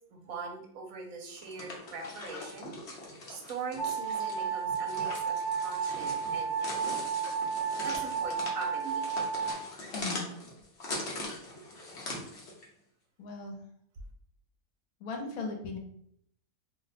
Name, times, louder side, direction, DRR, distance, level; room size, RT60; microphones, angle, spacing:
voice 1, 0.1-2.7 3.3-6.5 7.8-9.1 9.4-9.5, right 4 dB, 75° right, 1 dB, 1.0 m, -41 dB
sound 1, 1.3-12.7, left 2 dB, 55° left, 1.0 m, -41 dB
sound 2, 3.8-9.5, right 7 dB, 5° right, 0.6 m, -32 dB
voice 2, 9.9-10.3 13.2-13.6 15.0-15.8, left 3 dB, 80° left, 2 dB, 1.1 m, -37 dB
2.7 x 2.1 x 4.0 m, 0.68 s
omnidirectional pair, 1.5 m